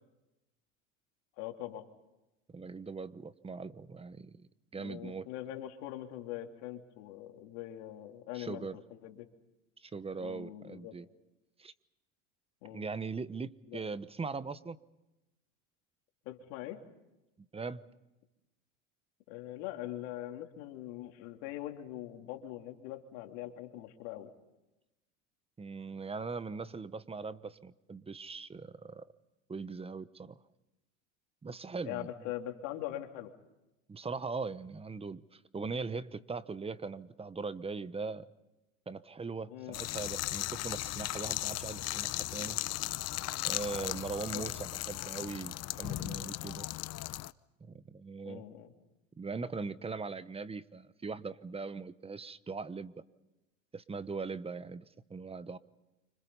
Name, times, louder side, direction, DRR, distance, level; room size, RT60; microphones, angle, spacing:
voice 1, 1.4-1.9 4.8-9.3 10.2-10.9 12.6-12.9 13.7-13.8 16.3-16.8 19.3-24.3 31.8-33.3 35.9-36.0 39.5-39.8 43.7-44.0 44.3-44.5 48.3-48.7, left 13 dB, 70° left, 4 dB, 3.3 m, -42 dB
voice 2, 2.5-5.3 8.3-8.8 9.8-11.1 11.6-11.7 12.7-14.8 17.5-17.8 25.6-29.1 29.5-30.4 31.4-32.1 33.9-38.3 38.9-42.6 43.4-46.7 47.6-48.4 49.2-52.9 53.7-54.8 55.1-55.6, right 4 dB, 15° right, 15 dB, 1.1 m, -40 dB
sound 1, 39.7-47.3, left 16 dB, 45° left, 0.8 m, -37 dB
29.0 x 26.0 x 5.6 m, 0.97 s
supercardioid pair, 95°, 37 cm